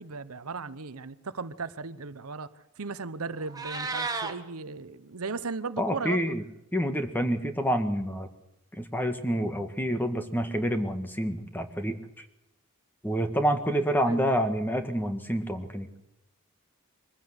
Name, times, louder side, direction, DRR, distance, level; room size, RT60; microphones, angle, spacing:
voice 1, 0.0-2.5 2.8-6.3 14.1-14.3, right 4 dB, 80° right, 14 dB, 0.9 m, -36 dB
Meow, 3.3-4.3, right 4 dB, 15° right, 1.7 m, -32 dB
voice 2, 5.8-6.4 6.7-8.3 8.8-12.3 13.0-15.9, equal, 10° left, 7 dB, 1.8 m, -28 dB
23.0 x 15.0 x 8.1 m, 0.86 s
head